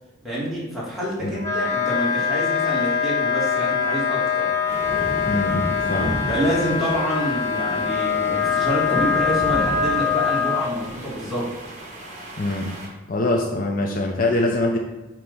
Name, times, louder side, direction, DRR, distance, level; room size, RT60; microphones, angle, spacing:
voice 1, 0.2-4.5 6.3-11.5, equal, ahead, -8 dB, 2.2 m, -27 dB
Wind instrument woodwind instrument, 1.4-10.6, left 6 dB, 15° left, 1.4 m, -23 dB
sound 1, 4.7-12.9, equal, 40° right, 1.5 m, -34 dB
voice 2, 5.2-6.2 12.4-12.7 13.1-14.8, left 2 dB, 45° left, 1 dB, 0.7 m, -23 dB
8.7 x 3.0 x 5.4 m, 1.1 s
head